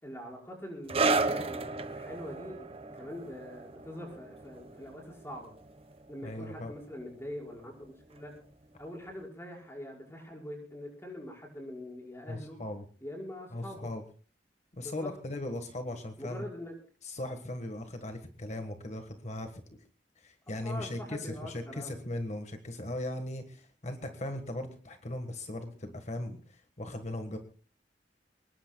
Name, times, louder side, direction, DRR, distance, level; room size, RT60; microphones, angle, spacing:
voice 1, 0.0-5.5 6.1-8.3 8.8-12.6 13.0-13.9 14.8-15.1 16.2-16.7 20.5-21.9, left 1 dB, 15° left, -1 dB, 5.6 m, -44 dB
sound 1, 0.9-7.9 8.1-8.4 9.1-9.2, right 3 dB, 35° right, 1.2 m, -34 dB
voice 2, 6.2-6.7 12.3-12.8 13.5-14.0 14.7-16.5 17.0-19.6 20.2-27.4, left 1 dB, 40° left, 6 dB, 1.5 m, -38 dB
24.0 x 20.5 x 2.3 m, 0.39 s
head